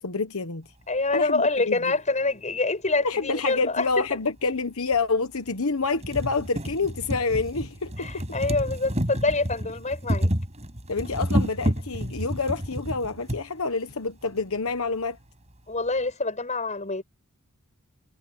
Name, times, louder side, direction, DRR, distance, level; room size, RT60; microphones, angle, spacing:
voice 1, 0.0-0.7 1.1-1.8 3.0-8.2 10.9-15.2, left 4 dB, 75° left, 1.2 m, -27 dB
voice 2, 0.9-4.2 8.0-10.3 15.7-17.0, left 3 dB, 35° left, 7.6 m, -26 dB
sound 1, 3.9-4.0 4.9-5.0 5.5-5.6 5.8-13.4 14.3-14.4 14.7-14.8, equal, 30° right, 5.5 m, -29 dB
head